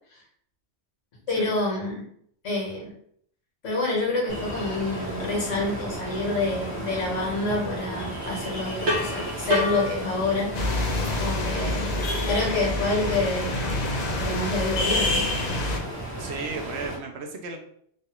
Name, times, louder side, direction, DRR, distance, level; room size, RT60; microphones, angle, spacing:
voice 1, 1.3-2.0 2.4-2.9 3.6-10.5 11.2-11.9 12.3-13.6 14.2-15.3, left 2 dB, 75° left, -3 dB, 1.4 m, -27 dB
Ocean, 4.3-16.9, right 1 dB, 15° left, 0.8 m, -35 dB
sound 1, 8.9-13.9, left 1 dB, 85° right, 1.2 m, -32 dB
sound 2, 10.5-15.8, left 2 dB, 55° left, 0.5 m, -27 dB
voice 2, 16.2-17.6, right 4 dB, 70° right, 3 dB, 0.8 m, -34 dB
3.1 x 2.4 x 2.8 m, 0.66 s
omnidirectional pair, 1.3 m